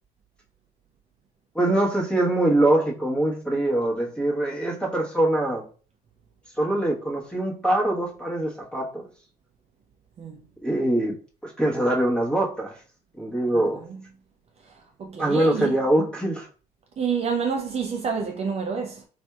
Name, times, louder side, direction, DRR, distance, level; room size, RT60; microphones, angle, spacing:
voice 1, 1.5-5.6 6.6-9.1 10.6-11.1 11.4-12.7 13.2-13.8 15.2-16.5, right 1 dB, 5° left, 1.2 m, -23 dB
voice 2, 13.5-14.0 14.7-14.8 15.0-15.8 17.0-19.1, right 5 dB, 40° right, 0.5 m, -28 dB
4.2 x 2.6 x 2.3 m
cardioid pair, 110°, 17 cm